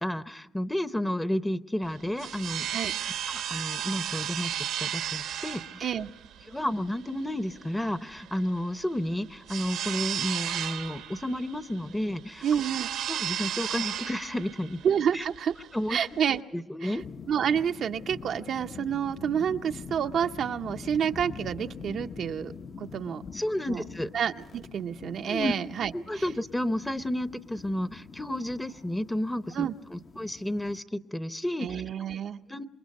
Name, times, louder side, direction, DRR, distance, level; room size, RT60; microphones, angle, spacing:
voice 1, 0.0-2.7 3.3-4.5 4.8-5.9 6.5-12.4 13.1-14.8 15.1-15.2 15.7-16.0 16.5-17.0 23.3-24.1 25.3-25.5 25.9-31.7 32.5-32.7, left 1 dB, 10° left, 13 dB, 0.8 m, -31 dB
sound 1, 1.8-16.4, right 10 dB, 90° right, 1.1 m, -35 dB
voice 2, 12.4-12.9 14.8-15.5 15.9-16.4 16.8-17.0 17.3-22.5 22.8-23.2 23.7-23.8 24.1-26.2 29.5-29.7 31.6-32.4, right 8 dB, 65° right, 7 dB, 0.6 m, -29 dB
sound 2, 17.0-30.8, left 5 dB, 45° left, 0.9 m, -44 dB
27.5 x 22.0 x 5.3 m, 1.1 s
cardioid pair, 90°, 0 cm